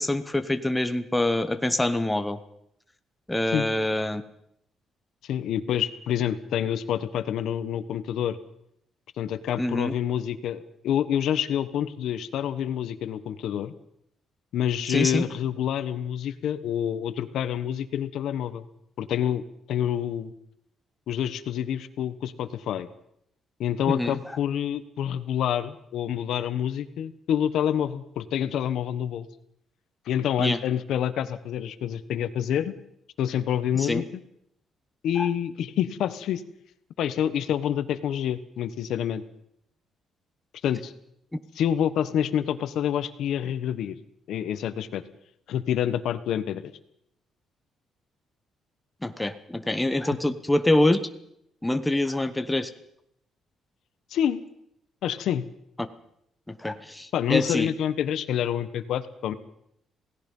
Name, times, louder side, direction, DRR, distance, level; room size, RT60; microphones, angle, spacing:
voice 1, 0.0-2.4 3.3-4.2 9.6-9.9 14.9-15.2 23.9-24.2 30.4-30.6 33.8-34.0 35.2-35.3 49.0-51.0 51.6-52.7 56.5-57.7, left 1 dB, 5° left, 9 dB, 1.0 m, -25 dB
voice 2, 5.2-8.4 9.2-13.7 14.5-18.6 19.0-19.4 19.7-20.3 21.1-22.9 23.6-29.3 30.1-32.7 33.2-34.2 35.0-36.4 37.0-39.2 40.6-40.9 41.5-44.0 44.3-45.0 45.5-46.6 54.1-54.4 55.0-55.4 57.1-59.3, left 9 dB, 65° left, 12 dB, 1.3 m, -27 dB
27.5 x 18.0 x 5.6 m, 0.75 s
cardioid pair, 165°, 0 cm